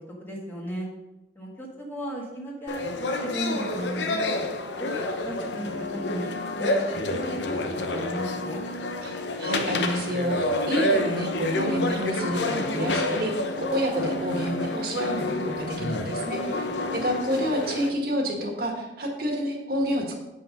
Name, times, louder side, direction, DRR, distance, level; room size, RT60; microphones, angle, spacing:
voice 1, 0.2-0.9 1.3-4.1 4.8-7.6 7.9-8.6, right 1 dB, 10° left, -3 dB, 1.6 m, -35 dB
sound 1, 2.7-17.9, left 2 dB, 85° left, 0.8 m, -29 dB
voice 2, 9.0-20.2, equal, 55° right, 1 dB, 1.6 m, -29 dB
7.8 x 5.5 x 5.2 m, 0.97 s
head